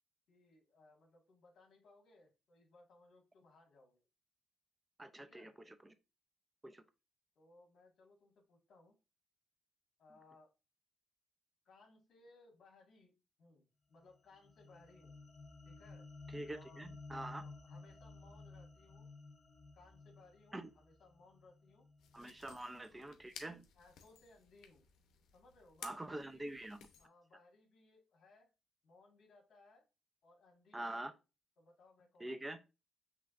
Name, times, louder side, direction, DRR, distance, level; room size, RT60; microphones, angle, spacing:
voice 1, 0.3-4.0 5.2-5.5 7.4-9.0 10.0-10.5 11.7-13.1 13.4-15.3 15.6-16.1 16.5-16.9 17.3-19.1 19.7-21.9 22.4-22.6 23.8-24.9 25.3-26.7 27.0-28.5 28.8-29.9 30.2-31.1 31.6-32.4, left 3 dB, 65° left, -1 dB, 1.7 m, -64 dB
voice 2, 5.0-5.9 6.6-6.8 16.3-17.4 20.5-20.7 22.1-23.6 25.8-26.8 30.7-31.1 32.2-32.6, right 1 dB, 15° right, 11 dB, 0.6 m, -45 dB
sound 1, 14.0-22.4, left 3 dB, 20° left, 2.2 m, -55 dB
sound 2, 22.0-27.1, left 7 dB, 80° left, 0.7 m, -57 dB
5.6 x 3.2 x 2.5 m, 0.29 s
cardioid pair, 90°, 0 cm